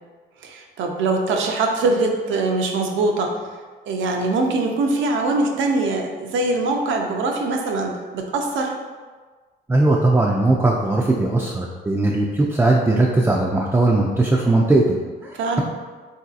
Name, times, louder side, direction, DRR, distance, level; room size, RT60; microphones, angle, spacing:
voice 1, 0.4-3.3 3.9-8.7 15.4-15.6, right 3 dB, 75° right, 2 dB, 0.5 m, -22 dB
voice 2, 9.7-14.9, right 2 dB, 10° right, -2 dB, 0.3 m, -18 dB
3.7 x 2.7 x 2.4 m, 1.4 s
cardioid pair, 90°, 20 cm